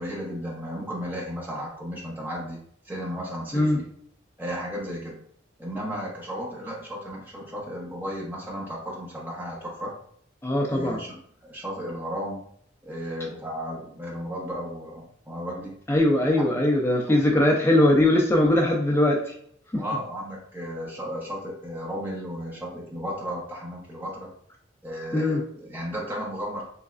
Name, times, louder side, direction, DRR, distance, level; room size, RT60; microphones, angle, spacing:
voice 1, 0.0-3.8 4.4-5.2 5.6-9.9 10.7-11.2 11.4-12.5 12.8-15.7 17.1-17.2 19.8-24.3 24.8-26.6, equal, 10° right, -3 dB, 0.8 m, -34 dB
voice 2, 10.4-11.0 15.9-19.3 19.7-19.8 25.1-25.4, left 1 dB, 15° left, 0 dB, 0.4 m, -21 dB
3.4 x 3.1 x 2.4 m, 0.64 s
head